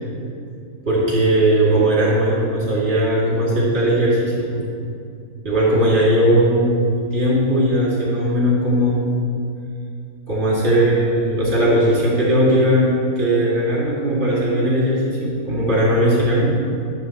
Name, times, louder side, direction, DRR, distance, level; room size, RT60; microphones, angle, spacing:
voice 1, 0.8-4.6 5.4-6.8 7.1-9.2 10.3-16.5, right 1 dB, 45° right, -7 dB, 2.7 m, -18 dB
9.2 x 3.8 x 7.1 m, 2.4 s
omnidirectional pair, 1.6 m